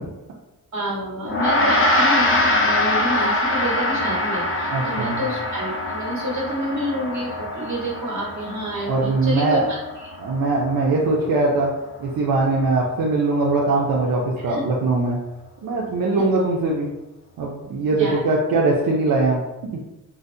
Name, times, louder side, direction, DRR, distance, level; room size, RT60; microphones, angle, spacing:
voice 1, 0.7-9.8 10.0-10.1 14.4-14.6 17.9-18.2, right 1 dB, 55° right, -4 dB, 1.2 m, -28 dB
Gong, 1.3-10.9, left 1 dB, 40° left, 0.5 m, -23 dB
voice 2, 4.7-5.2 8.9-9.6 10.2-11.7 12.0-15.2 15.6-16.9 17.4-19.4 19.7-19.8, right 3 dB, 85° right, -3 dB, 0.5 m, -21 dB
3.9 x 2.1 x 2.6 m, 0.98 s
wide cardioid pair, 155°, 34 cm